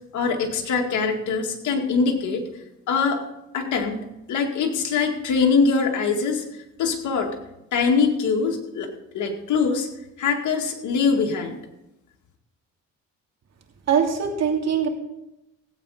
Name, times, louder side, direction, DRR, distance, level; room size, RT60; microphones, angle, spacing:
voice 1, 0.1-2.5 2.9-3.2 3.5-4.0 4.3-6.4 6.8-7.3 7.7-8.9 9.1-9.9 10.2-11.6, left 5 dB, 75° left, 3 dB, 2.2 m, -23 dB
voice 2, 13.9-14.9, right 7 dB, 60° right, 2 dB, 2.9 m, -22 dB
17.0 x 8.8 x 5.0 m, 0.89 s
cardioid pair, 90°, 30 cm